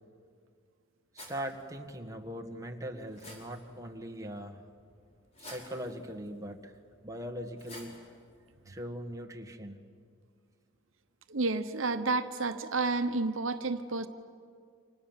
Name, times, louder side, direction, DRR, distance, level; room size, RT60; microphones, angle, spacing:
voice 1, 1.1-4.6 5.4-6.7 7.0-7.9 8.7-9.8, equal, 15° right, 2 dB, 1.9 m, -40 dB
sound 1, 1.2-8.7, left 1 dB, 30° left, 4.9 m, -54 dB
voice 2, 11.3-14.1, right 3 dB, 75° right, 9 dB, 1.1 m, -30 dB
30.0 x 26.5 x 7.5 m, 2.2 s
head